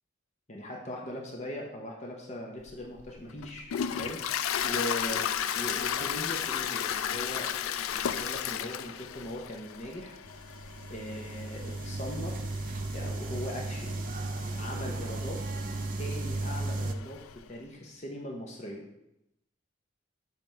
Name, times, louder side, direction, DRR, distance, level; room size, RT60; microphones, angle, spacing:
voice 1, 0.5-5.3 5.5-7.5 7.9-10.2 10.9-12.4 12.9-14.0 14.6-15.4 16.0-17.2 17.5-18.9, left 1 dB, 35° left, 0 dB, 0.8 m, -40 dB
Toilet flush, 2.7-17.4, left 9 dB, 85° left, 0.3 m, -35 dB
sound 1, 6.5-10.1, left 1 dB, ahead, 0.7 m, -55 dB
sound 2, 10.3-16.9, right 2 dB, 40° right, 0.4 m, -35 dB
7.3 x 4.0 x 4.4 m, 0.84 s
head